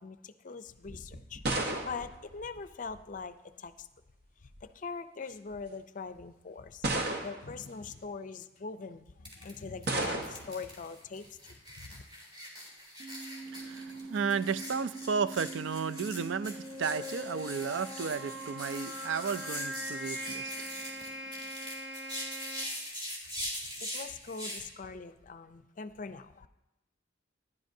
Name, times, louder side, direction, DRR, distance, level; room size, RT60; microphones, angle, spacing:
voice 1, 0.0-3.9 4.6-6.9 7.2-12.0 23.4-23.5 23.8-26.5, left 4 dB, 45° left, 0.5 m, -42 dB
sound 1, 0.8-3.2 4.2-4.7 5.5-5.6 6.8-7.6 9.9-10.6, right 2 dB, 55° right, 1.1 m, -34 dB
sound 2, 9.2-9.5 9.8-24.6, equal, 30° right, 3.5 m, -42 dB
sound 3, 13.0-22.6, right 1 dB, 5° right, 0.9 m, -42 dB
voice 2, 13.5-20.8 21.2-21.3, right 6 dB, 80° right, 0.4 m, -34 dB
15.5 x 10.5 x 2.7 m
head